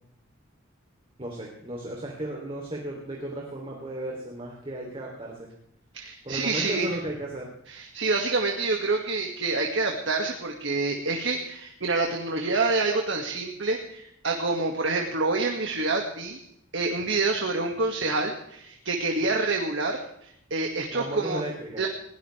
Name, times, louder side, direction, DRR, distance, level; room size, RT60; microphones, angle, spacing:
voice 1, 1.2-5.5 6.2-7.5 20.9-21.9, right 1 dB, 25° right, -1 dB, 3.2 m, -35 dB
voice 2, 5.9-6.9 7.7-16.4 16.7-21.4 21.8-21.9, right 3 dB, 65° right, 1 dB, 2.1 m, -27 dB
21.0 x 18.0 x 3.4 m, 0.74 s
head